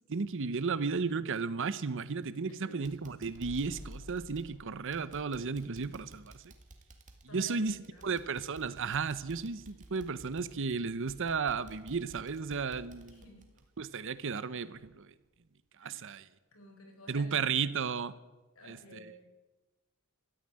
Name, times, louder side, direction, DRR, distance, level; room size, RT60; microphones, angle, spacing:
voice 1, 0.1-6.3 7.3-7.7 8.0-13.2 13.8-15.1 15.8-16.2 17.1-18.1 18.7-18.8, right 5 dB, 60° right, 0.7 m, -34 dB
sound 1, 2.2-2.5 2.8-14.4 14.7-14.9 15.4-15.5, right 1 dB, 35° right, 1.9 m, -56 dB
voice 2, 2.4-2.9 7.3-8.1 13.0-13.5 15.8-16.1 16.5-17.6 18.5-19.3, left 1 dB, 70° left, 4.3 m, -53 dB
sound 2, 3.3-7.1 7.4-7.5, equal, 10° right, 3.3 m, -52 dB
13.5 x 9.8 x 9.8 m
head